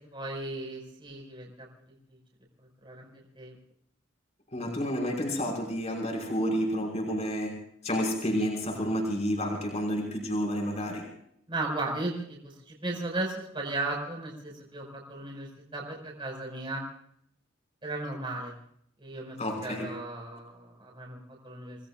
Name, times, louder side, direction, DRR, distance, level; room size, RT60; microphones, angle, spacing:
voice 1, 0.1-1.5 2.8-3.1 3.4-3.5 11.5-16.8 17.8-18.5 19.0-19.4 19.6-21.2 21.4-21.8, right 2 dB, 25° right, 0 dB, 5.4 m, -35 dB
voice 2, 4.5-11.1 19.4-19.9, equal, 35° left, 0 dB, 5.4 m, -30 dB
29.0 x 19.5 x 2.5 m, 0.68 s
head